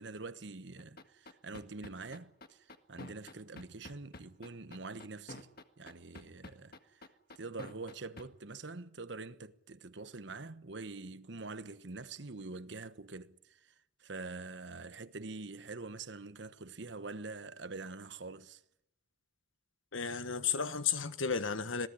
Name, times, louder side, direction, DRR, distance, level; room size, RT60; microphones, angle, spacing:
voice 1, 0.0-5.5 5.8-7.1 7.4-13.7 14.0-18.6, right 3 dB, 65° right, 1.1 m, -45 dB
sound 1, 0.8-8.2, left 2 dB, 50° left, 1.7 m, -48 dB
voice 2, 19.9-21.9, left 6 dB, 85° left, 1.4 m, -33 dB
26.5 x 18.0 x 10.0 m
head